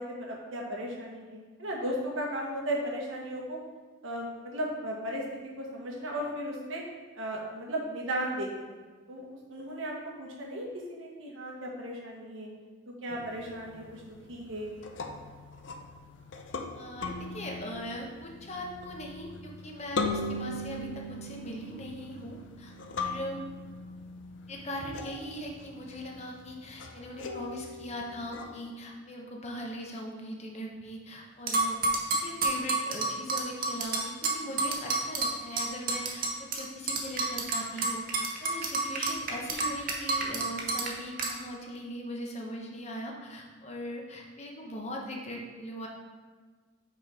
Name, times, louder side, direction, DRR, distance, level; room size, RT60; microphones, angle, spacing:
voice 1, 0.0-3.6 4.0-6.8 7.1-8.8 9.1-9.2 9.5-12.5 12.9-14.7, right 1 dB, 85° right, -1 dB, 1.3 m, -36 dB
sound 1, 13.1-28.7, left 2 dB, 65° left, 0.5 m, -40 dB
voice 2, 16.7-23.4 24.5-31.8 32.1-45.9, equal, 35° left, 0 dB, 0.9 m, -40 dB
sound 2, 31.5-36.6 36.9-40.9 41.2-41.3, right 3 dB, 45° right, 0.8 m, -29 dB
5.4 x 4.3 x 4.8 m, 1.4 s
head